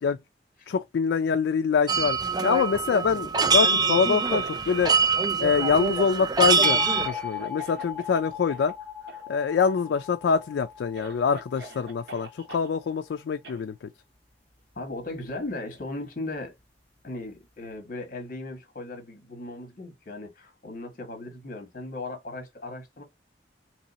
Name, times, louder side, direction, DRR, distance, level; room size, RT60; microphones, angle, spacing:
voice 1, 0.7-4.9 5.4-8.7 9.3-13.7, left 6 dB, 85° left, 0.3 m, -25 dB
sound 1, 1.9-7.1, right 5 dB, 25° right, 0.4 m, -24 dB
Cough, 3.3-5.3 5.5-8.2 8.5-8.7 9.1-9.2 9.5-10.1 10.5-10.6 10.9-12.7 13.4-13.6, right 2 dB, 80° right, 1.0 m, -45 dB
sound 2, 6.6-12.9, left 5 dB, 10° left, 0.7 m, -37 dB
voice 2, 14.7-16.5 17.0-23.0, left 2 dB, 50° left, 1.3 m, -37 dB
3.1 x 2.8 x 4.0 m
head